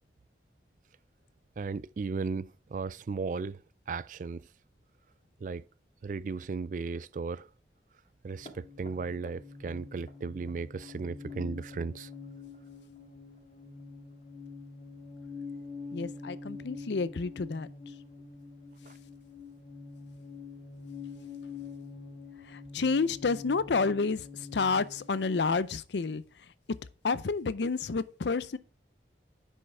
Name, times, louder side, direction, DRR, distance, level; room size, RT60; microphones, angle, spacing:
voice 1, 1.6-4.5 5.4-5.6 6.0-7.5 8.2-12.1 18.9-19.0, right 4 dB, 45° right, 0.3 m, -36 dB
sound 1, 8.3-25.1, left 4 dB, 40° left, 2.0 m, -45 dB
voice 2, 15.9-17.7 22.5-26.2 27.0-28.6, left 4 dB, 80° left, 0.5 m, -30 dB
9.8 x 5.5 x 3.5 m
head